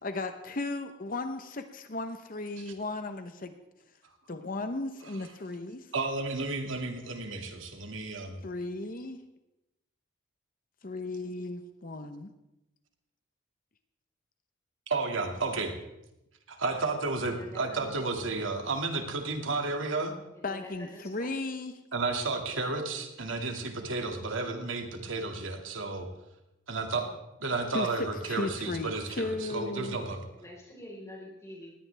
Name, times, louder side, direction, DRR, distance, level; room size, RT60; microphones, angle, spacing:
voice 1, 0.0-3.5 4.3-5.9 8.4-9.2 10.8-12.3 20.4-21.8 27.7-30.0, left 2 dB, 45° left, 8 dB, 0.9 m, -35 dB
voice 2, 5.9-8.4 14.9-15.7 16.5-20.1 21.9-26.1 26.7-27.1 27.4-30.2, right 3 dB, 85° right, 4 dB, 2.2 m, -32 dB
voice 3, 17.3-17.9 18.2-18.3 19.4-19.7 20.3-21.3 30.4-31.7, left 1 dB, 15° left, -2 dB, 4.5 m, -47 dB
20.0 x 17.0 x 3.4 m, 0.92 s
head